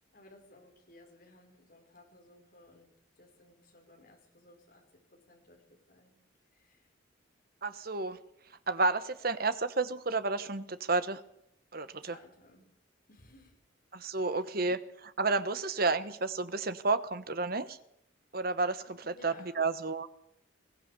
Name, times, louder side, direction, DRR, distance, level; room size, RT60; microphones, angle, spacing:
voice 1, 0.1-2.9 3.2-4.8 5.1-5.6 5.9-6.2 6.5-6.9 12.1-12.7 13.1-13.6 14.2-14.4 19.1-19.6, left 2 dB, 50° left, 1 dB, 5.8 m, -58 dB
voice 2, 7.6-8.2 8.7-11.2 11.7-12.2 13.9-17.8 18.3-20.1, right 3 dB, 50° right, 12 dB, 1.2 m, -31 dB
22.0 x 17.5 x 6.9 m, 0.76 s
head